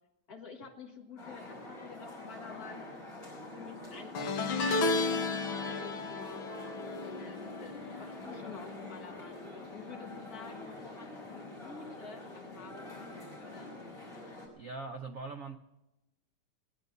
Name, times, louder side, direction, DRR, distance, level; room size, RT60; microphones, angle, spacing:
voice 1, 0.3-2.9 3.3-4.4 4.7-6.5 6.8-13.8, left 5 dB, 45° left, 1 dB, 2.0 m, -50 dB
sound 1, 1.2-14.5, left 2 dB, 10° left, 4.8 m, -46 dB
Santur Arpegio, 4.2-9.6 9.8-10.2 11.4-11.5, left 3 dB, 70° left, 1.8 m, -34 dB
voice 2, 14.6-15.6, right 3 dB, 85° right, 7 dB, 0.7 m, -41 dB
19.0 x 10.5 x 6.7 m, 0.97 s
omnidirectional pair, 2.4 m